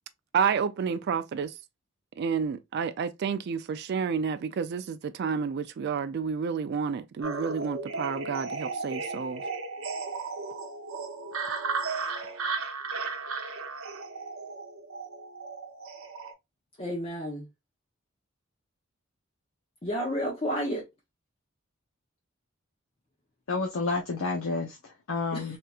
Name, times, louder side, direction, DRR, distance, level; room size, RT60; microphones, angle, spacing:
voice 1, 0.3-1.5 2.2-9.4, right 6 dB, 55° right, 0.3 m, -30 dB
sound 1, 7.2-16.3, right 4 dB, 85° right, 0.8 m, -35 dB
voice 2, 16.8-17.5 19.8-20.8 25.3-25.6, equal, 30° left, 0.8 m, -31 dB
voice 3, 23.5-25.6, left 3 dB, 85° left, 0.7 m, -30 dB
3.4 x 2.8 x 2.3 m
head